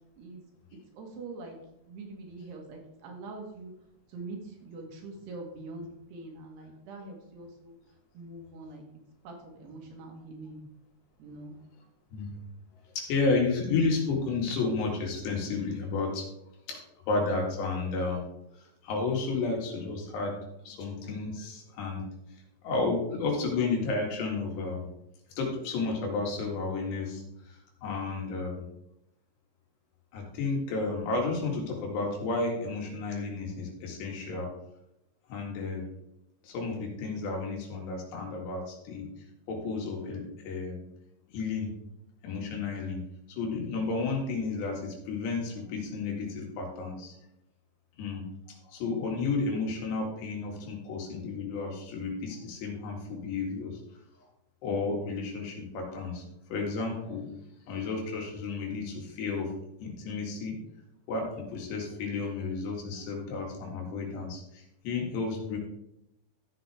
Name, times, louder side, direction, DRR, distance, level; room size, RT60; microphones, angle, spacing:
voice 1, 1.0-1.6 1.9-3.7 4.1-7.8 8.1-8.8 9.2-10.6 11.2-11.6, right 3 dB, 75° right, 1 dB, 3.7 m, -43 dB
voice 2, 13.0-16.3 16.7-16.8 17.1-18.2 18.6-20.4 20.7-22.0 22.6-24.9 25.4-28.6 30.1-34.5 35.3-35.8 36.4-39.1 39.5-40.8 41.3-41.7 42.2-43.0 43.3-47.1 48.0-48.3 48.7-53.8 54.6-56.2 56.5-57.3 57.7-59.5 59.8-60.6 61.1-65.6, left 3 dB, 80° left, 0 dB, 4.2 m, -32 dB
13.5 x 7.7 x 3.5 m, 0.81 s
omnidirectional pair, 4.8 m